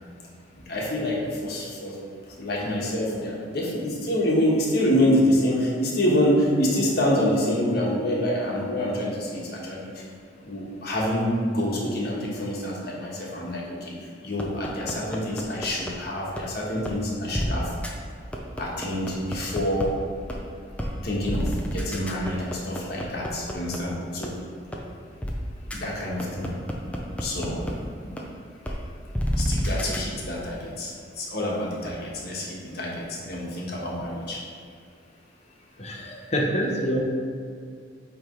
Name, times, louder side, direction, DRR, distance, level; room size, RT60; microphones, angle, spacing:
voice 1, 0.7-2.0 2.3-10.0 10.4-13.9 14.2-17.7 18.6-19.9 21.0-24.3 25.7-26.5 27.2-27.7 29.4-34.4, left 1 dB, 55° left, -4 dB, 1.3 m, -26 dB
sound 1, 14.4-15.9 16.4-16.5 16.9-17.0 17.3-17.5 17.8-17.9 18.3-19.9 20.3-20.4 20.8-20.9 21.3-23.8 24.2-24.3 24.7-24.8 25.2-25.3 25.7-25.8 26.2-27.7 28.2-28.3 28.7-28.8 29.1-30.0, equal, 5° left, 0.5 m, -28 dB
voice 2, 35.8-37.0, equal, 35° left, 0 dB, 0.8 m, -26 dB
8.0 x 3.2 x 3.8 m, 2.3 s
head